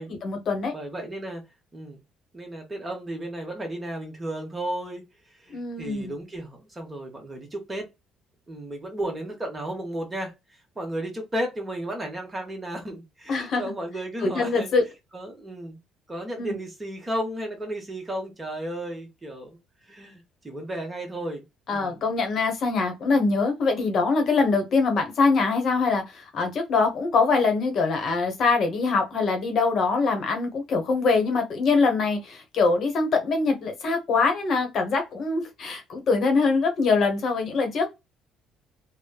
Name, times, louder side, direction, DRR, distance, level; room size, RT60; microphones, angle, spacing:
voice 1, 0.1-0.7 5.5-6.1 13.3-13.7 14.2-14.8 16.4-16.6 21.7-37.9, left 4 dB, 50° left, 0.9 m, -23 dB
voice 2, 0.7-1.4 1.7-2.0 2.3-5.0 5.4-7.8 8.5-10.3 10.8-14.7 15.1-15.8 16.1-19.6 19.9-21.4 21.7-22.0, right 1 dB, 20° right, 1.0 m, -33 dB
3.1 x 2.0 x 2.2 m
cardioid pair, 135°, 0 cm